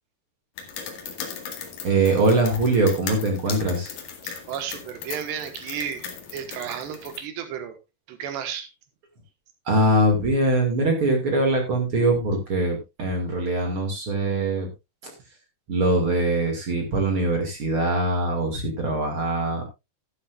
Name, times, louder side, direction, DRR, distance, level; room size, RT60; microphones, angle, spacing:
sound 1, 0.6-7.2, left 7 dB, 60° left, 3.3 m, -38 dB
voice 1, 1.8-3.9 9.7-14.7 15.0-15.1 15.7-19.6, right 2 dB, 40° right, 2 dB, 2.4 m, -22 dB
voice 2, 4.2-7.8 8.1-8.7, right 8 dB, 80° right, 8 dB, 3.6 m, -33 dB
12.0 x 12.0 x 2.5 m, 0.24 s
omnidirectional pair, 4.9 m